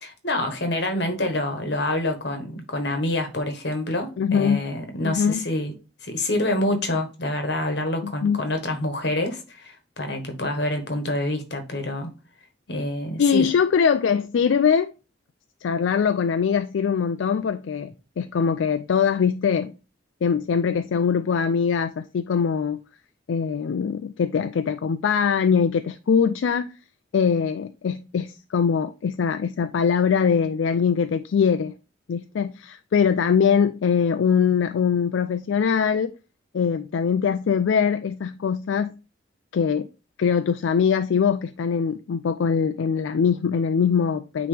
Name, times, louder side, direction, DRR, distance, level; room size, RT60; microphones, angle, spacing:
voice 1, 0.0-5.7 6.0-12.1 12.7-13.5, left 1 dB, 60° left, 1.3 m, -27 dB
voice 2, 4.2-4.6 5.0-5.4 8.0-8.4 13.2-14.9 15.6-19.7 20.2-22.8 23.3-26.8 27.1-31.7 32.1-36.1 36.5-39.0 39.5-39.9 40.2-44.5, left 6 dB, 80° left, 0.4 m, -22 dB
9.2 x 3.1 x 3.4 m
head